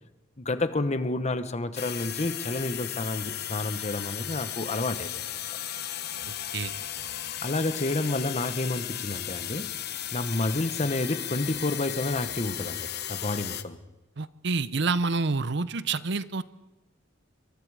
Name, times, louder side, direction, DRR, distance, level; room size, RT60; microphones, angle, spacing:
voice 1, 0.4-5.2 7.2-9.7 10.1-13.8, left 2 dB, 35° left, 11 dB, 1.1 m, -30 dB
sound 1, 1.7-13.6, left 11 dB, 55° left, 1.0 m, -35 dB
sound 2, 5.3-5.6 6.1-7.3 7.8-8.7 10.5-11.1 11.4-12.9, equal, 5° left, 5.1 m, -57 dB
voice 2, 14.2-16.4, right 4 dB, 65° right, 15 dB, 0.8 m, -28 dB
26.5 x 23.5 x 4.9 m, 1.0 s
head